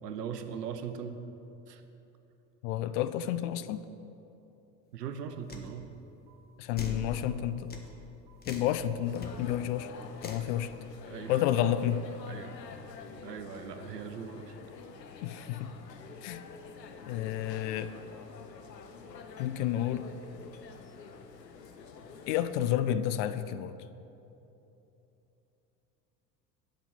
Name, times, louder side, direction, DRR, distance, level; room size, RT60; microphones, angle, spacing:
voice 1, 0.0-1.2 1.7-1.8 4.9-5.9 11.1-11.4 12.3-12.6 13.2-14.5, right 7 dB, 75° right, 9 dB, 0.9 m, -40 dB
voice 2, 2.6-3.8 6.6-7.7 8.5-9.9 10.2-10.7 11.3-12.0 15.2-15.7 16.2-16.4 17.1-17.9 19.4-20.1 22.3-23.8, left 11 dB, 50° left, 12 dB, 0.6 m, -30 dB
sound 1, 5.3-5.4 6.3-6.4 7.3-7.4 8.3-8.4 9.3-9.4 10.3-10.4 11.3-11.4 12.3-12.4 13.3-13.4 14.3-14.4, right 13 dB, 50° right, 1.9 m, -62 dB
sound 2, 5.5-5.7 6.8-7.1 7.7-7.9 8.4-8.7 9.2-9.3 10.2-10.5, left 4 dB, 20° left, 1.2 m, -41 dB
sound 3, 9.0-22.5, left 5 dB, 80° left, 0.8 m, -48 dB
8.2 x 6.2 x 8.2 m, 2.9 s
figure-of-eight pair, 75°, 49 cm